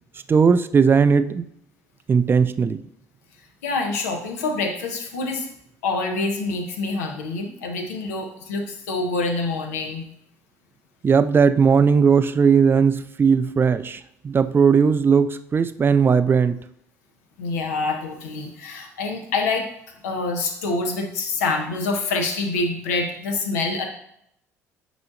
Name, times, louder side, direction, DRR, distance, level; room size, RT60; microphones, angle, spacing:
voice 1, 0.3-1.4 2.1-2.8 11.0-16.6, right 6 dB, 25° right, 12 dB, 0.4 m, -18 dB
voice 2, 3.6-5.5 5.8-10.1 17.4-19.7 20.0-23.9, left 3 dB, 75° left, 3 dB, 0.9 m, -26 dB
8.1 x 5.0 x 2.5 m, 0.74 s
figure-of-eight pair, 55°, 8 cm